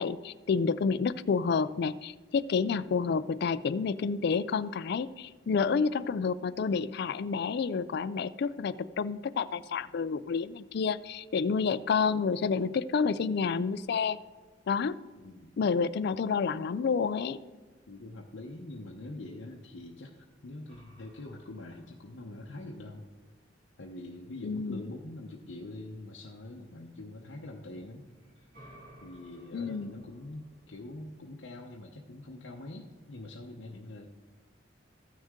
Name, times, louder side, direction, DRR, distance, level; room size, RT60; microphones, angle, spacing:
voice 1, 0.0-14.2 14.7-15.0 15.6-17.4 24.4-24.8 29.5-29.9, left 5 dB, 60° left, 16 dB, 0.4 m, -29 dB
voice 2, 15.2-15.5 17.9-23.0 23.8-28.1 28.4-28.5 29.0-34.1, left 2 dB, 85° left, 0 dB, 0.8 m, -44 dB
sound 1, 20.7-24.4 27.9-31.0, right 1 dB, 50° right, 2.3 m, -58 dB
14.5 x 6.3 x 3.6 m, 1.3 s
head